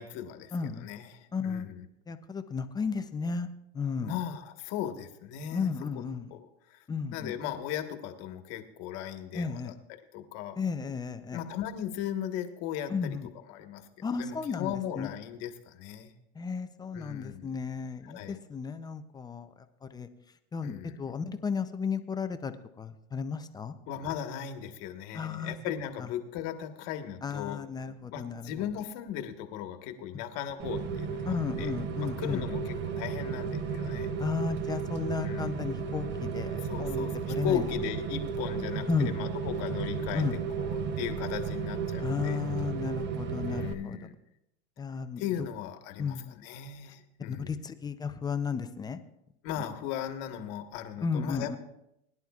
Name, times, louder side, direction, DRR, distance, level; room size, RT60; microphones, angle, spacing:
voice 1, 0.0-1.9 4.0-5.7 6.3-6.8 7.1-9.7 10.1-10.6 11.3-13.2 13.5-13.9 14.1-16.1 16.9-17.5 18.1-18.4 20.6-20.9 23.9-27.6 28.1-31.7 32.2-34.1 35.2-35.6 36.6-42.4 43.5-44.1 45.2-47.6 49.4-51.6, left 10 dB, 50° left, 7 dB, 1.4 m, -37 dB
voice 2, 0.5-0.9 1.3-1.7 2.1-4.2 5.5-6.3 6.9-7.3 9.3-9.7 10.6-11.4 12.9-13.3 14.0-15.1 16.3-19.5 19.8-20.1 20.5-23.8 25.1-25.6 26.0-26.1 27.2-28.6 31.3-32.5 34.2-37.9 38.9-39.1 40.1-40.3 42.0-44.0 44.8-45.5 46.0-46.4 47.3-49.0 49.6-49.7 51.0-51.6, left 5 dB, 10° left, 9 dB, 0.5 m, -34 dB
Rain, 30.6-43.7, right 5 dB, 35° right, 0.9 m, -33 dB
21.5 x 11.0 x 2.4 m, 0.82 s
supercardioid pair, 135°, 32 cm